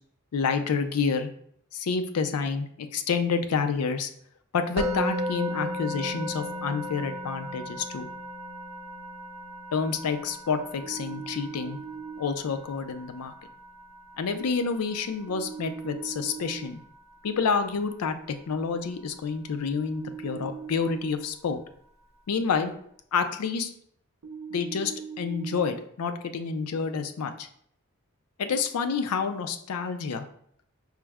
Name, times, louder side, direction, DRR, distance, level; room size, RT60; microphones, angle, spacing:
voice 1, 0.3-1.3 1.7-4.1 4.5-8.1 9.7-11.8 12.2-13.3 14.2-16.8 17.2-21.6 22.3-22.7 23.1-23.7 24.5-27.5 28.4-30.3, left 5 dB, 85° left, 8 dB, 0.4 m, -28 dB
Musical instrument, 4.8-15.9, equal, 30° right, 0.5 m, -36 dB
sound 1, 10.8-12.2 15.3-16.7 19.7-21.1 24.2-25.6, right 6 dB, 80° right, 0.5 m, -40 dB
4.6 x 2.0 x 3.4 m, 0.66 s
head